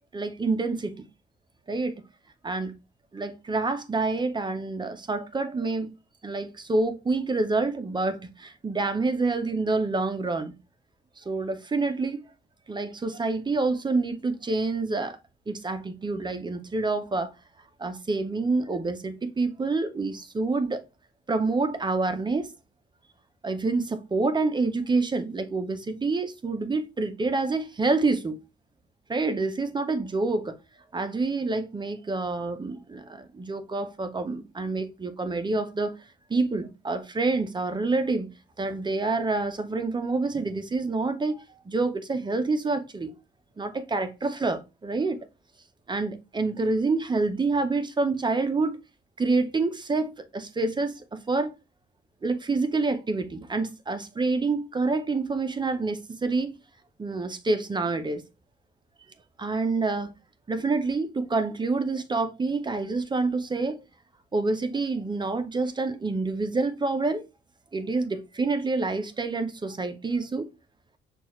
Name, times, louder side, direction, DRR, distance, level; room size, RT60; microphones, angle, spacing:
voice 1, 0.1-1.1 1.7-2.0 2.4-2.7 3.1-5.9 6.2-10.5 11.2-12.2 12.7-15.2 15.5-17.3 17.8-20.8 21.3-22.5 23.4-28.4 29.1-30.6 30.9-36.0 36.3-38.3 38.6-43.1 43.6-45.2 45.9-48.8 49.2-51.5 52.2-56.5 57.0-58.2 59.4-60.1 60.5-63.8 64.3-67.2 67.7-70.5, right 3 dB, 20° right, 0.6 m, -27 dB
6.1 x 2.4 x 3.0 m
cardioid pair, 90°, 20 cm